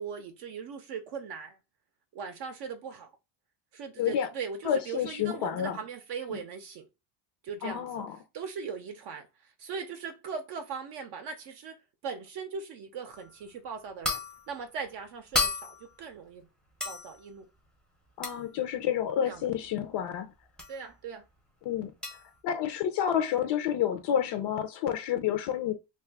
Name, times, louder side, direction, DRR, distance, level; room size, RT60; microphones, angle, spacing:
voice 1, 0.0-1.6 2.1-3.1 3.7-6.8 7.4-8.0 8.3-9.3 9.6-11.7 12.0-14.2 14.5-16.5 16.8-17.4 19.2-19.4 20.7-21.2, right 6 dB, 55° right, 0.6 m, -39 dB
voice 2, 4.0-4.3 4.6-5.8 6.3-6.4 7.6-8.2 18.2-20.3 21.6-21.9 22.4-25.7, left 9 dB, 60° left, 0.5 m, -29 dB
sound 1, 13.1-13.3 14.0-14.5 15.3-16.0 16.8-17.2 18.2-18.5 20.6-20.8 22.0-22.3, left 3 dB, ahead, 0.5 m, -32 dB
2.5 x 2.4 x 3.4 m
cardioid pair, 140°, 49 cm